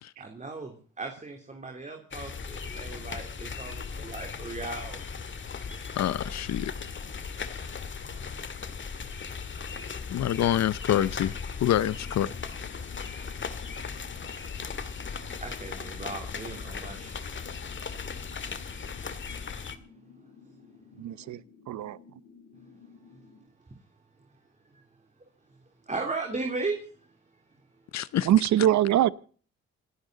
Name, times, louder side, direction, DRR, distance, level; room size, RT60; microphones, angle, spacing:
voice 1, 0.2-5.0 8.0-8.2 15.3-17.3 24.7-24.8 25.9-27.0, right 3 dB, 25° right, 3.3 m, -37 dB
sound 1, 2.1-19.8, left 5 dB, 40° left, 2.0 m, -37 dB
voice 2, 6.0-6.7 10.1-12.3 27.9-28.3 28.6-28.7, left 11 dB, 65° left, 0.7 m, -27 dB
sound 2, 11.6-23.4, left 5 dB, 80° left, 6.9 m, -55 dB
voice 3, 21.0-21.4 21.7-22.0 28.3-29.1, right 12 dB, 70° right, 0.9 m, -23 dB
27.5 x 10.5 x 4.0 m
cardioid pair, 90°, 30 cm